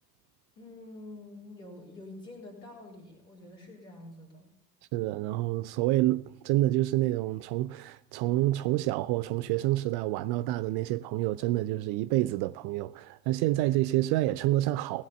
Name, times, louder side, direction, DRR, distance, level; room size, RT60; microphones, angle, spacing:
voice 1, 0.6-4.5, left 2 dB, 75° left, 3.8 m, -47 dB
voice 2, 4.9-15.0, right 16 dB, 55° right, 0.5 m, -28 dB
17.5 x 7.3 x 7.1 m
figure-of-eight pair, 55°, 48 cm